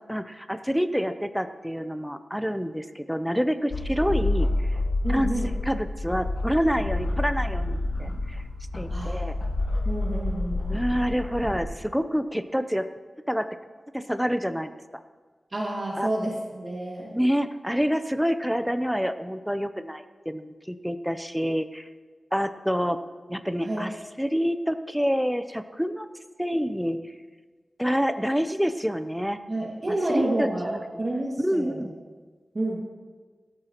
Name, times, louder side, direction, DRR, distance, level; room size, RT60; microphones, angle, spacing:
voice 1, 0.1-4.8 5.1-5.3 5.6-8.4 8.7-9.4 10.7-12.9 13.3-13.6 13.9-14.7 16.0-16.1 17.1-21.9 22.3-23.0 23.3-26.1 26.4-27.1 27.8-29.4 30.1-30.8 31.4-31.9, equal, ahead, 10 dB, 0.6 m, -27 dB
sound 1, 3.7-11.6, left 2 dB, 70° left, 1.5 m, -28 dB
voice 2, 5.0-5.5 8.9-9.2 9.9-10.9 15.5-17.1 23.6-23.8 29.5-31.8 32.5-32.8, right 1 dB, 40° right, -3 dB, 2.1 m, -29 dB
16.5 x 13.0 x 3.0 m, 1.4 s
wide cardioid pair, 90°, 0 cm